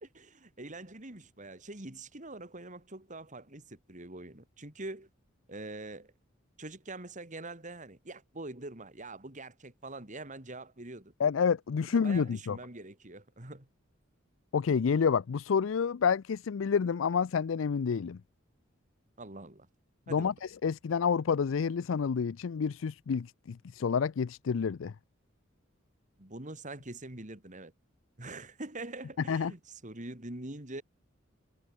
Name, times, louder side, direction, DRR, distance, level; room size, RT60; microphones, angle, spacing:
voice 1, 0.0-5.1 5.5-6.1 6.6-11.1 11.8-13.7 19.2-19.7 20.1-20.3 26.2-27.7 28.2-30.8, right 2 dB, 40° right, 3.2 m, -44 dB
voice 2, 11.2-12.6 14.5-18.2 20.1-24.9 29.3-29.5, left 6 dB, 75° left, 0.4 m, -29 dB
head